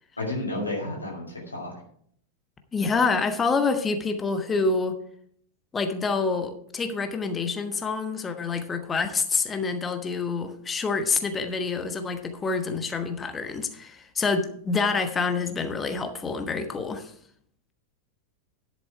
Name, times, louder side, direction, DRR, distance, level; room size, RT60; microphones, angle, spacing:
voice 1, 0.2-1.7, left 1 dB, 80° left, -3 dB, 2.9 m, -31 dB
voice 2, 2.7-5.0 5.7-17.1, left 4 dB, 20° left, 7 dB, 1.2 m, -27 dB
10.5 x 7.8 x 4.6 m, 0.64 s
figure-of-eight pair, 90°, 0 cm